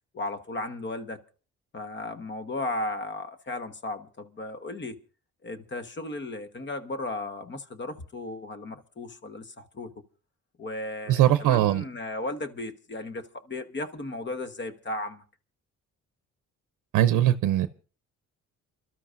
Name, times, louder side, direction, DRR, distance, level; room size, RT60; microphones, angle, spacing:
voice 1, 0.1-1.2 1.7-5.0 5.4-9.9 10.6-15.2, left 2 dB, 40° left, 1.3 m, -35 dB
voice 2, 11.1-11.8 16.9-17.7, right 12 dB, 90° right, 0.7 m, -21 dB
28.5 x 13.0 x 2.6 m
cardioid pair, 90°, 30 cm